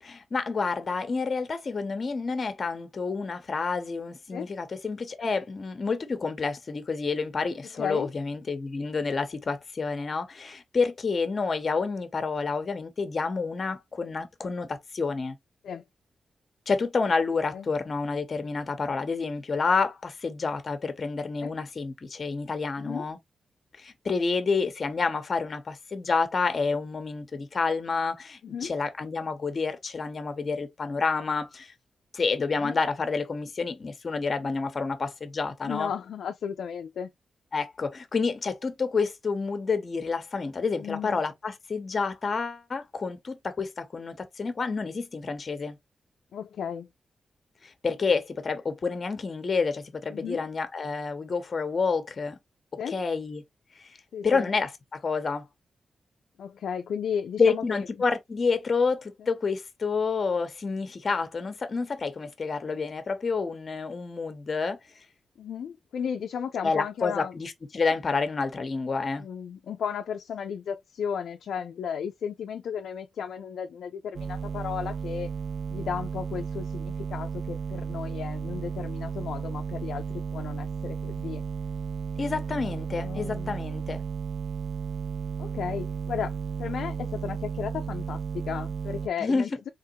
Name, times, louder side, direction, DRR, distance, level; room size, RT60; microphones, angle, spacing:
voice 1, 0.0-15.4 16.7-23.2 23.8-31.7 32.1-35.9 37.5-45.8 47.6-52.4 52.9-53.4 53.8-53.9 54.2-55.5 57.4-64.8 66.6-69.2 82.2-84.0 89.2-89.5, left 4 dB, 45° left, 0.8 m, -29 dB
voice 2, 7.7-8.1 15.6-15.8 17.5-17.7 21.4-21.5 22.8-23.1 28.4-28.7 32.6-32.8 35.6-37.1 40.8-41.2 46.3-46.9 50.1-50.4 52.8-53.0 54.1-54.5 56.4-57.9 65.4-67.3 69.2-75.3 75.7-81.4 83.0-83.6 85.4-89.7, left 7 dB, 90° left, 0.3 m, -34 dB
sound 1, 74.1-89.1, right 6 dB, 60° right, 0.4 m, -34 dB
3.5 x 2.9 x 2.8 m
wide cardioid pair, 105°, 0 cm